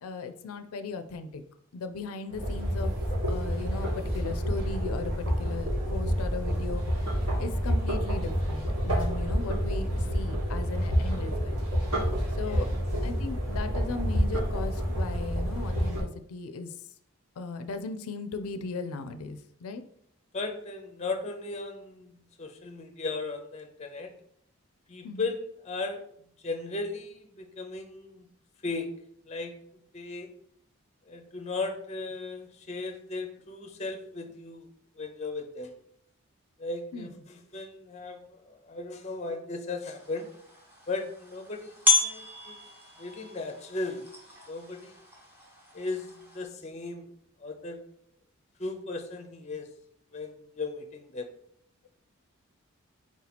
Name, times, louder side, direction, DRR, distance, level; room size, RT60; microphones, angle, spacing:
voice 1, 0.0-1.4 1.7-2.9 3.3-6.8 7.4-11.6 12.4-12.7 13.0-16.7 17.4-19.8 25.0-25.3 36.9-37.1, left 4 dB, 85° left, 9 dB, 0.4 m, -37 dB
sound 1, 2.3-16.0, equal, 90° right, 1.7 m, -28 dB
voice 2, 20.3-24.1 24.9-26.0 26.4-28.3 28.6-28.9 29.2-29.6 29.9-30.3 31.1-34.7 35.0-35.7 36.6-40.3 40.9-42.6 43.0-44.1 44.5-45.0 45.7-47.1 47.4-47.8 48.6-49.7 50.1-51.3, left 3 dB, 30° left, 6 dB, 0.5 m, -36 dB
sound 2, 39.8-46.5, left 3 dB, 10° right, 0.9 m, -32 dB
4.6 x 2.8 x 4.1 m, 0.68 s
head